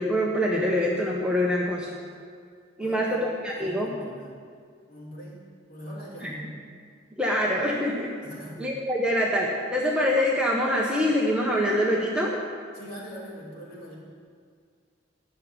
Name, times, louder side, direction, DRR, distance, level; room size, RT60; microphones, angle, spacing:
voice 1, 0.0-1.9 2.8-3.9 6.2-6.3 7.2-8.1 8.6-12.4, equal, 5° right, -4 dB, 1.0 m, -25 dB
voice 2, 2.8-3.3 3.5-4.3 4.8-5.4 5.7-6.6 8.2-8.7 12.7-13.9, equal, 50° left, -5 dB, 3.2 m, -41 dB
9.4 x 6.5 x 8.8 m, 2.1 s
head